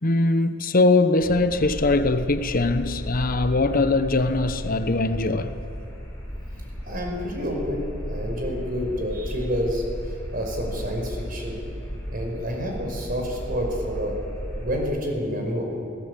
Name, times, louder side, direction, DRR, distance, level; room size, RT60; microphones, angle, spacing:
voice 1, 0.0-5.6, left 2 dB, 45° left, 1.0 m, -21 dB
sound 1, 1.2-14.8, equal, 10° left, 6.0 m, -35 dB
voice 2, 6.9-9.8 10.3-11.6 12.1-14.2 14.6-15.6, equal, 45° right, 5.5 m, -28 dB
25.5 x 18.0 x 8.5 m
head